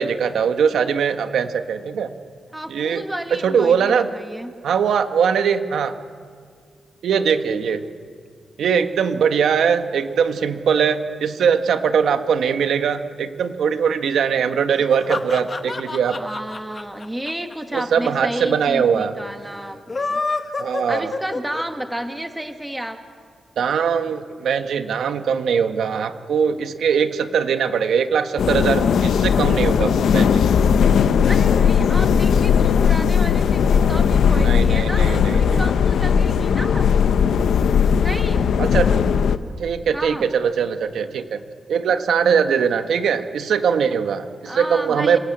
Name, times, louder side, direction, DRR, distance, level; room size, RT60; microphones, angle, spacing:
voice 1, 0.0-2.1 2.7-3.0 3.3-4.1 4.6-5.9 7.0-7.8 8.6-16.2 17.7-19.1 20.6-21.1 23.6-30.5 34.4-35.6 38.6-38.9 39.6-41.4 41.7-45.2, right 7 dB, 80° right, 8 dB, 1.3 m, -21 dB
voice 2, 2.5-4.5 16.2-20.2 20.9-23.0 31.3-36.9 38.0-38.5 39.9-40.3 44.4-45.2, right 1 dB, 5° right, 6 dB, 1.4 m, -31 dB
sound 1, 14.7-18.1 18.4-18.5 18.7-18.8 19.7-21.9, left 3 dB, 30° left, 1.2 m, -27 dB
sound 2, 28.4-39.4, left 7 dB, 80° left, 0.9 m, -17 dB
27.5 x 16.5 x 8.7 m, 2.1 s
wide cardioid pair, 145°, 0 cm